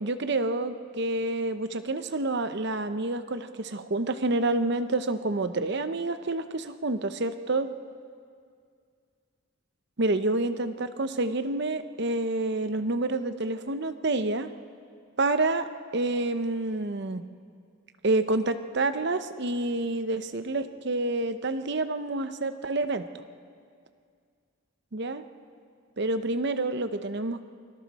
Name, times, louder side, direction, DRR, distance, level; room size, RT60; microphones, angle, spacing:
voice 1, 0.0-7.7 10.0-14.5 15.2-15.7 15.9-17.2 18.0-23.2 24.9-25.2 26.0-27.4, right 2 dB, 55° right, 10 dB, 0.8 m, -28 dB
28.5 x 25.0 x 4.2 m, 2.2 s
head